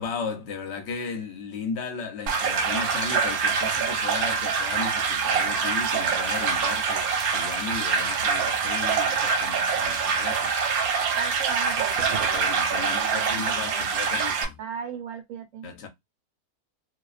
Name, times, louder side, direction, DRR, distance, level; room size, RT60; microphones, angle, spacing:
voice 1, 0.0-10.6 12.3-14.6 15.6-15.9, left 5 dB, 55° left, 0.8 m, -35 dB
sound 1, 2.3-14.5, right 5 dB, 85° right, 1.1 m, -25 dB
sound 2, 5.1-8.3 8.6-9.6 9.9-12.5, equal, 25° left, 0.8 m, -45 dB
voice 2, 11.2-12.5 12.8-14.1 14.6-15.7, right 6 dB, 70° right, 1.0 m, -38 dB
2.4 x 2.2 x 2.3 m
omnidirectional pair, 1.5 m